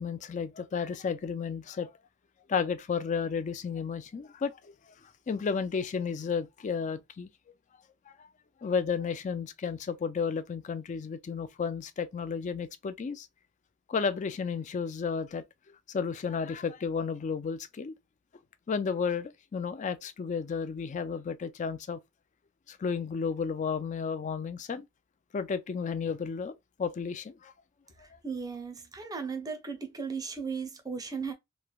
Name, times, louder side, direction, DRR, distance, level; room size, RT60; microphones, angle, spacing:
voice 1, 0.0-1.9 2.5-4.7 5.3-7.3 8.1-8.2 8.6-13.3 13.9-15.4 15.9-18.0 18.7-22.0 22.7-24.8 25.3-27.5 28.1-28.2, left 6 dB, 35° left, 0.3 m, -32 dB
voice 2, 28.0-31.3, right 5 dB, 15° right, 0.6 m, -36 dB
3.1 x 2.1 x 2.2 m
head